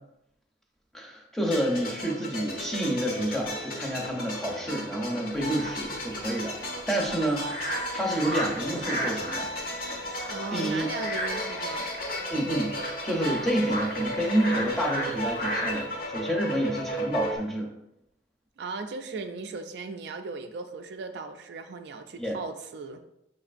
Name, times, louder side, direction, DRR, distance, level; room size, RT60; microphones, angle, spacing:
voice 1, 0.9-7.6 7.9-9.5 10.5-10.9 12.3-12.8 13.0-17.7 22.2-22.4, right 1 dB, ahead, -1 dB, 0.7 m, -29 dB
sound 1, 1.4-17.4, equal, 55° left, 0.9 m, -34 dB
sound 2, 5.3-15.8, equal, 80° left, 1.6 m, -36 dB
voice 2, 10.3-11.9 18.6-23.0, right 4 dB, 65° right, 6 dB, 0.4 m, -37 dB
5.9 x 3.1 x 2.5 m, 0.83 s
head